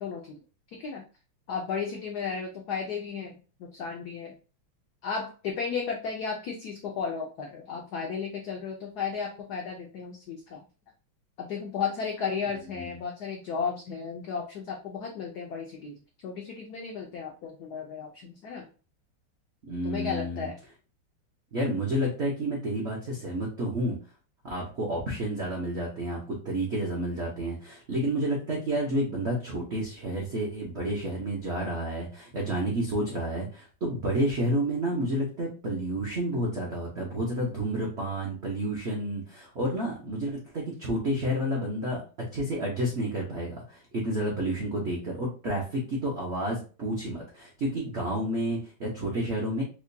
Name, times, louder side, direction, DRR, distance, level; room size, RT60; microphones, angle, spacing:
voice 1, 0.0-0.4 0.8-1.0 1.5-4.3 5.0-10.6 11.4-18.7 19.8-20.6, left 6 dB, 90° left, 1 dB, 0.8 m, -34 dB
voice 2, 19.7-20.5 21.5-24.0 24.4-42.0 42.3-49.6, right 1 dB, 80° right, -2 dB, 0.6 m, -30 dB
4.8 x 2.2 x 2.6 m, 0.36 s
omnidirectional pair, 2.4 m